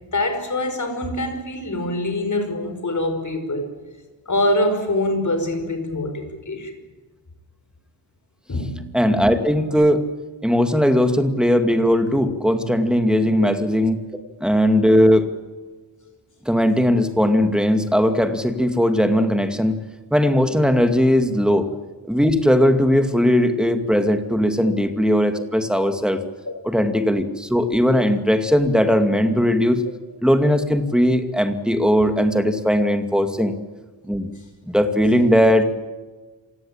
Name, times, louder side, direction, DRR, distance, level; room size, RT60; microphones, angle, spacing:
voice 1, 0.1-3.7 4.3-6.7 8.5-8.9 13.4-13.5 26.5-26.6, left 1 dB, 40° left, 6 dB, 5.3 m, -24 dB
voice 2, 8.9-10.1 10.4-14.0 14.4-15.3 16.5-19.8 20.1-21.7 22.1-26.2 26.6-29.8 30.2-33.5 34.0-34.3 34.7-35.7, equal, ahead, 7 dB, 2.3 m, -18 dB
27.5 x 17.5 x 8.9 m, 1.3 s
wide cardioid pair, 125°, 46 cm